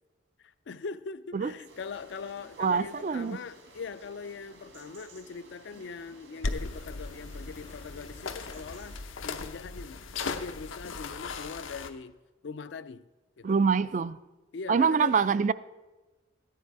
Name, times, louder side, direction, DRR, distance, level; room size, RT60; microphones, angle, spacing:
voice 1, 0.4-12.2 12.4-13.0 13.4-13.6 14.5-15.2, left 5 dB, 65° left, 0.4 m, -41 dB
sound 1, 1.7-9.0, right 2 dB, 70° right, 1.7 m, -54 dB
voice 2, 2.6-3.4 13.4-14.2 14.7-15.5, right 5 dB, 40° right, 0.3 m, -25 dB
sound 2, 6.4-11.9, left 3 dB, 90° left, 0.8 m, -37 dB
14.0 x 9.7 x 4.7 m
head